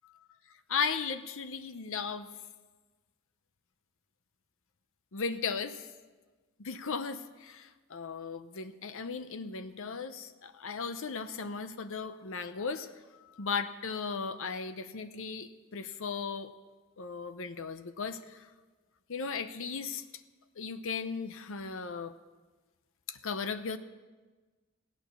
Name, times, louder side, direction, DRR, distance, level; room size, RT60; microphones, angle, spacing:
voice 1, 0.7-2.3 5.1-5.9 6.6-12.9 13.4-16.5 17.0-18.5 19.1-20.0 20.6-22.1 23.1-23.8, left 5 dB, 65° left, 11 dB, 0.7 m, -36 dB
16.5 x 11.5 x 6.8 m, 1.3 s
head